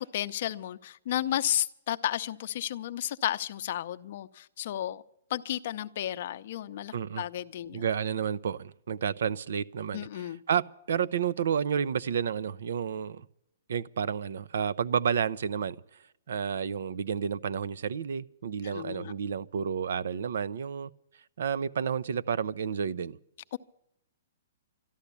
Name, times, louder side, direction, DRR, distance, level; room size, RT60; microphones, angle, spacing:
voice 1, 0.0-5.0 5.3-7.8 9.9-10.4 18.6-19.1 23.5-23.6, left 12 dB, 45° left, 0.6 m, -33 dB
voice 2, 6.9-7.2 7.7-13.3 13.7-15.8 16.3-20.9 21.4-23.2, right 7 dB, 70° right, 0.6 m, -31 dB
13.0 x 12.0 x 8.3 m
hypercardioid pair, 170°, 0 cm